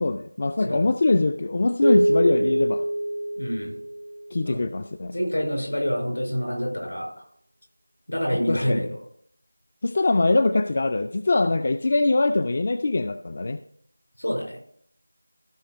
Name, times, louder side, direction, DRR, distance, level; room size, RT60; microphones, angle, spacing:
voice 1, 0.0-2.8 4.3-5.1 8.3-8.9 9.8-13.6, left 2 dB, 35° left, 11 dB, 0.3 m, -23 dB
sound 1, 1.8-4.4, right 1 dB, 70° right, 0.5 m, -24 dB
voice 2, 3.4-3.7 4.4-4.7 5.1-7.2 8.1-9.0 14.2-14.6, equal, 80° left, 1 dB, 4.9 m, -27 dB
15.0 x 5.2 x 4.1 m, 0.63 s
figure-of-eight pair, 170°, 0 cm